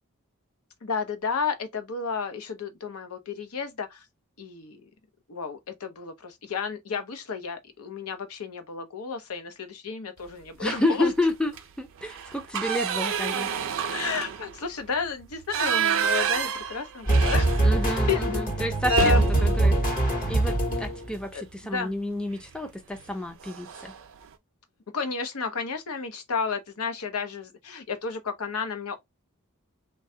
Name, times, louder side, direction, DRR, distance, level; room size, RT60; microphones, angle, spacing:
voice 1, 0.8-4.0 4.4-4.8 5.3-11.1 13.9-17.5 17.8-18.4 18.9-19.2 21.3-21.9 24.9-29.0, left 5 dB, 70° left, 0.7 m, -31 dB
voice 2, 10.6-13.5 17.6-19.8 20.3-21.4 21.7-23.9, left 1 dB, 5° left, 0.5 m, -30 dB
sound 1, 10.6-11.1 11.5-11.6 12.0-18.0 18.3-18.4 18.8-21.0 22.3-22.6 23.0-23.1 23.4-24.0, right 8 dB, 60° right, 0.5 m, -30 dB
sound 2, 17.1-21.2, right 2 dB, 40° left, 1.0 m, -23 dB
3.2 x 2.3 x 2.7 m
head